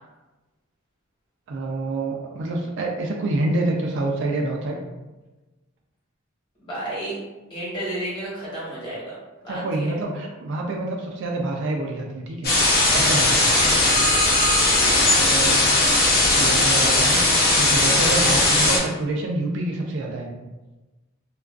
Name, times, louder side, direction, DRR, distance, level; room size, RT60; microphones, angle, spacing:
voice 1, 1.5-4.8 9.5-12.5 12.9-13.4 15.1-15.9 16.3-17.2 17.5-20.3, right 2 dB, 60° right, 0 dB, 0.4 m, -27 dB
voice 2, 6.6-7.2 7.5-9.1 9.4-9.9 13.3-13.6 14.7-15.0, right 1 dB, 20° left, -8 dB, 1.0 m, -32 dB
sound 1, 12.4-18.8, left 2 dB, 45° left, 0.6 m, -18 dB
2.3 x 2.3 x 2.3 m, 1.1 s
head